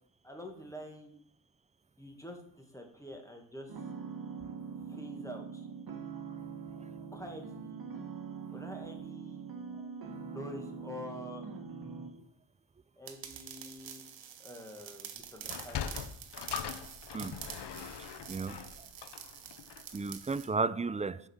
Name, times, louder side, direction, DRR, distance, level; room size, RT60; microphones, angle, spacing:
voice 1, 0.2-1.1 2.0-3.7 4.9-5.7 7.1-7.8 8.5-9.5 10.2-11.5 13.0-14.1 14.4-15.9, equal, 5° left, 3 dB, 1.8 m, -46 dB
sound 1, 3.7-12.1, right 5 dB, 55° right, 1.3 m, -43 dB
sound 2, 13.1-20.5, right 8 dB, 75° right, 0.9 m, -47 dB
Sliding door, 15.4-20.0, left 8 dB, 65° left, 0.7 m, -41 dB
voice 2, 18.0-18.6 19.9-21.2, right 4 dB, 15° right, 16 dB, 0.3 m, -33 dB
5.6 x 5.2 x 6.2 m, 0.66 s
cardioid pair, 45°, 45 cm